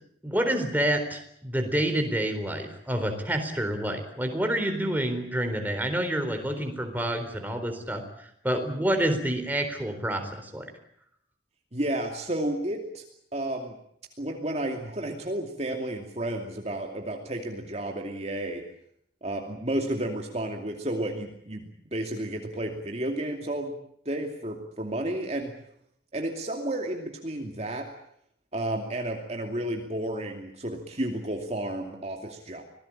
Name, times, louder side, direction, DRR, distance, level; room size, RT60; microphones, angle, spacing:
voice 1, 0.2-10.7, right 1 dB, 10° right, 5 dB, 4.0 m, -28 dB
voice 2, 11.7-13.0 13.3-13.8 14.2-18.6 19.2-23.7 24.0-25.5 26.1-27.9 28.5-32.6, right 1 dB, 35° right, 3 dB, 2.6 m, -32 dB
26.0 x 18.5 x 8.7 m, 0.71 s
head